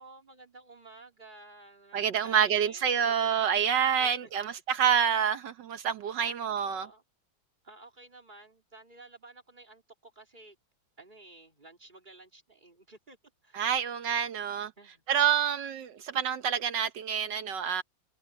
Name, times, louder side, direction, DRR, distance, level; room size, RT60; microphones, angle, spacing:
voice 1, 0.0-3.3 4.0-4.1 4.4-4.5 6.2-7.0 7.6-10.6 11.0-13.2 13.4-13.7 14.8-15.0, right 2 dB, 25° right, 3.5 m, -52 dB
voice 2, 1.9-6.9 13.5-14.7 15.1-17.8, right 8 dB, 70° right, 1.5 m, -27 dB
omnidirectional pair, 2.1 m